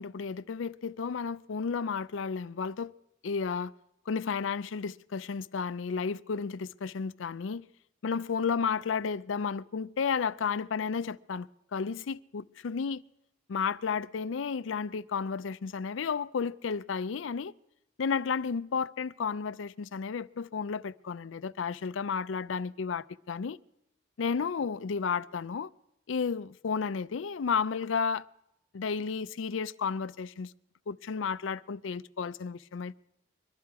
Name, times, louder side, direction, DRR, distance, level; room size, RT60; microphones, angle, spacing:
voice 1, 0.0-2.9 3.2-3.7 4.1-7.7 8.0-13.0 13.5-17.5 18.0-23.6 24.2-25.7 26.1-28.3 28.7-30.5 30.9-33.0, left 5 dB, 85° left, 0.5 m, -32 dB
22.5 x 12.5 x 4.7 m
head